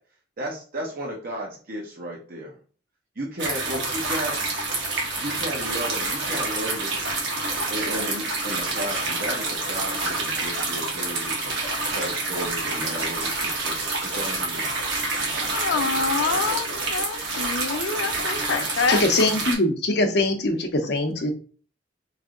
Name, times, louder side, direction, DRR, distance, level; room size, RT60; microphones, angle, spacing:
voice 1, 0.4-2.5 3.2-4.3 5.2-7.1 7.7-11.5 11.9-14.7, equal, 50° right, -2 dB, 0.8 m, -34 dB
sound 1, 3.4-19.5, right 2 dB, 65° right, 1.2 m, -27 dB
voice 2, 15.5-19.0, left 5 dB, 85° left, 8 dB, 0.5 m, -26 dB
voice 3, 18.9-21.3, left 2 dB, 60° left, 4 dB, 0.7 m, -22 dB
3.3 x 2.6 x 3.6 m, 0.40 s
head